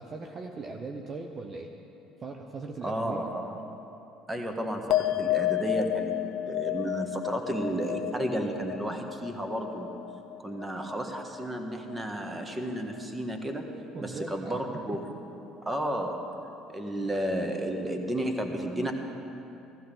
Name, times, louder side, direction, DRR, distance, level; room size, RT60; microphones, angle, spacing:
voice 1, 0.0-1.7 2.2-3.3 5.2-5.3 13.9-14.6, right 3 dB, 40° right, 3 dB, 0.9 m, -39 dB
voice 2, 2.8-3.6 4.3-6.2 6.5-9.9 10.4-13.7 14.0-15.1 15.6-16.2 16.7-18.9, right 1 dB, 15° right, 4 dB, 1.6 m, -32 dB
sound 1, 4.9-11.6 11.9-12.5, left 14 dB, 65° left, 0.4 m, -32 dB
15.0 x 15.0 x 3.9 m, 3.0 s
hypercardioid pair, 65°, 0 cm